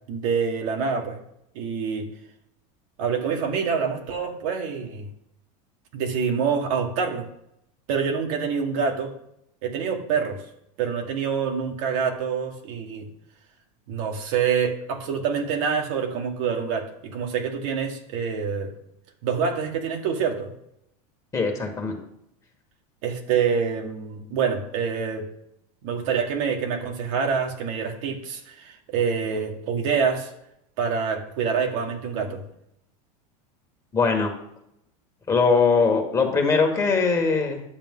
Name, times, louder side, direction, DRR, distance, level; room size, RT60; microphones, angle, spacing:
voice 1, 0.1-1.2 1.5-2.1 3.0-5.1 5.9-7.3 7.9-9.1 9.6-10.4 10.8-13.1 13.9-18.7 19.2-20.5 23.0-25.2 25.8-30.3 30.8-32.4, right 6 dB, 65° right, 3 dB, 1.7 m, -26 dB
voice 2, 21.3-21.9 33.9-34.3 35.3-37.6, left 4 dB, 15° left, 3 dB, 1.6 m, -21 dB
10.5 x 6.9 x 3.7 m, 0.77 s
supercardioid pair, 145°, 19 cm